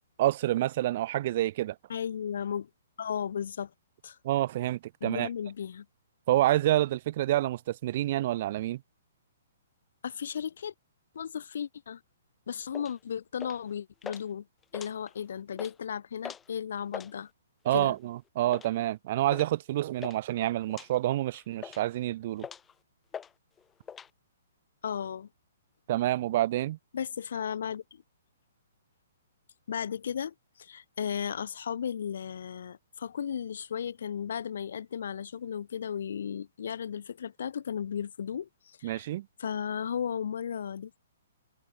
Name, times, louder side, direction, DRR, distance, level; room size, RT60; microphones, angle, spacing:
voice 1, 0.2-1.8 4.2-5.3 6.3-8.8 17.7-22.5 25.9-26.8 38.8-39.3, right 14 dB, 50° right, 0.4 m, -28 dB
voice 2, 1.9-2.7 3.0-3.7 4.0-4.2 5.0-5.8 10.0-10.7 11.1-12.0 12.5-14.4 14.7-17.3 17.7-17.9 24.8-25.3 26.9-27.8 29.7-39.1 39.4-41.0, left 8 dB, 65° left, 5.0 m, -35 dB
sound 1, 12.7-13.0 13.4-13.7 14.0-14.2 14.6-15.2 15.5-15.7 16.2-16.5 16.8-17.1 17.7-17.9 18.5-18.7 19.3-19.5 19.8-20.2 20.7-20.9 21.3-21.9 22.4-22.7 23.1-23.3 23.6-24.1, left 7 dB, 15° left, 4.3 m, -42 dB
hypercardioid pair, 130°, 0 cm